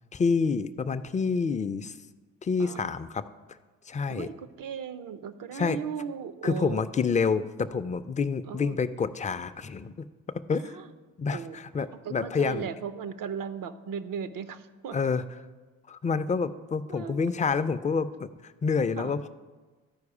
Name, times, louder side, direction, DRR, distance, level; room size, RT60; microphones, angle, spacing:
voice 1, 0.1-1.9 2.4-3.2 3.9-4.3 5.5-5.8 6.4-9.9 10.5-10.7 11.2-12.7 14.9-15.2 15.9-18.3 18.6-19.3, left 5 dB, 20° left, 12 dB, 0.4 m, -28 dB
voice 2, 4.1-6.8 8.5-8.8 10.5-10.9 11.3-11.6 11.9-15.0 16.9-17.3 19.0-19.2, right 7 dB, 65° right, 13 dB, 0.6 m, -37 dB
12.0 x 4.8 x 4.8 m, 1.3 s
supercardioid pair, 60°, 35 cm